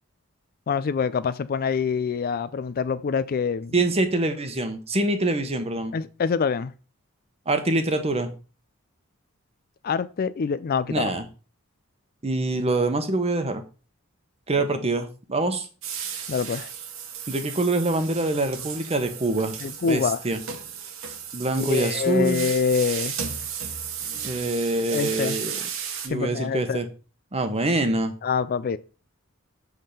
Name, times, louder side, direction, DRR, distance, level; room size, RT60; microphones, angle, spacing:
voice 1, 0.7-3.7 5.9-6.7 9.8-11.1 16.3-16.7 19.6-20.2 21.6-23.2 24.9-25.4 26.1-26.8 28.2-28.8, left 6 dB, 45° left, 0.4 m, -25 dB
voice 2, 3.7-5.9 7.5-8.3 10.9-11.3 12.2-13.6 14.5-15.7 17.3-19.5 19.8-20.4 21.3-22.5 24.2-25.6 26.0-26.9 27.3-28.1, right 2 dB, 30° right, 1.0 m, -25 dB
sound 1, 15.8-26.1, right 7 dB, 65° right, 1.2 m, -34 dB
7.8 x 3.7 x 6.7 m
head